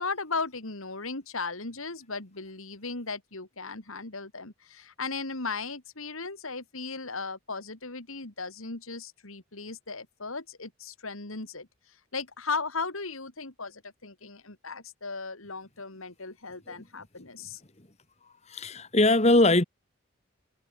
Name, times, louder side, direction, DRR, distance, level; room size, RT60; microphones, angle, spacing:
voice 1, 0.0-11.7 12.1-17.6, left 4 dB, 75° left, 3.1 m, -36 dB
voice 2, 18.5-19.6, left 2 dB, 30° left, 1.8 m, -21 dB
head